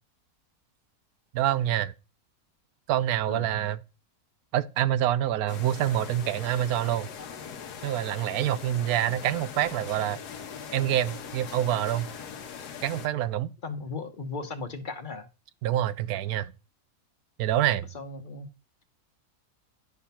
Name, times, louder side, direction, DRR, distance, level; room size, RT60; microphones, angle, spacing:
voice 1, 1.3-1.9 2.9-3.8 4.5-7.1 7.8-10.2 10.7-12.1 12.8-13.5 15.6-16.5 17.4-17.9, right 12 dB, 75° right, 1.0 m, -26 dB
sound 1, 5.5-13.1, left 7 dB, 90° left, 1.5 m, -41 dB
voice 2, 13.6-15.3 17.9-18.5, left 3 dB, 35° left, 0.9 m, -36 dB
11.0 x 3.8 x 5.7 m
omnidirectional pair, 1.7 m